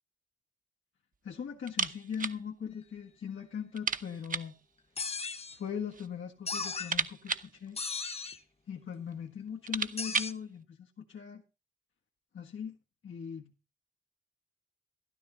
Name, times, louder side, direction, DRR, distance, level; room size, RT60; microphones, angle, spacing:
voice 1, 1.2-4.6 5.5-7.8 8.7-11.4 12.3-12.8 13.0-13.5, left 7 dB, 85° left, 1.6 m, -40 dB
sound 1, 1.6-2.4 2.7-2.8 3.1-3.2 3.7-4.6 5.5-6.1 6.4-8.4 9.1-9.2 9.5-10.4, right 5 dB, 45° right, 0.8 m, -35 dB
sound 2, 5.0-5.6 6.5-6.9 7.8-8.4 10.0-10.3, left 4 dB, 30° left, 0.9 m, -36 dB
13.0 x 12.5 x 3.9 m
wide cardioid pair, 140°, 20 cm